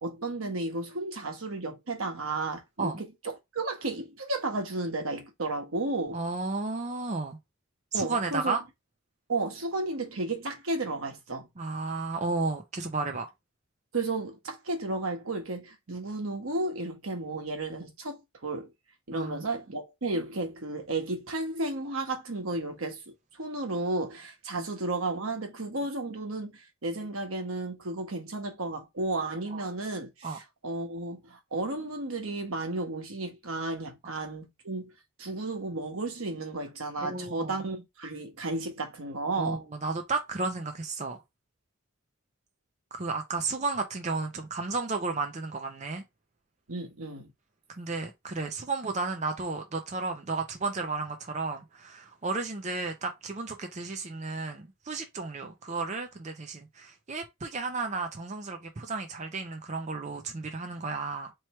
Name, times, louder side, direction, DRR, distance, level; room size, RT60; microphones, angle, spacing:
voice 1, 0.0-6.2 7.9-8.5 9.3-11.5 13.9-18.7 19.1-23.0 23.3-34.9 35.2-39.6 46.7-47.3, right 2 dB, 85° right, 1.3 m, -33 dB
voice 2, 6.1-7.4 7.9-8.6 11.6-13.3 19.1-19.4 29.5-29.6 30.2-30.4 37.0-37.6 39.4-41.2 42.9-46.0 47.8-61.3, right 3 dB, 35° right, 0.5 m, -33 dB
3.1 x 3.1 x 4.3 m
head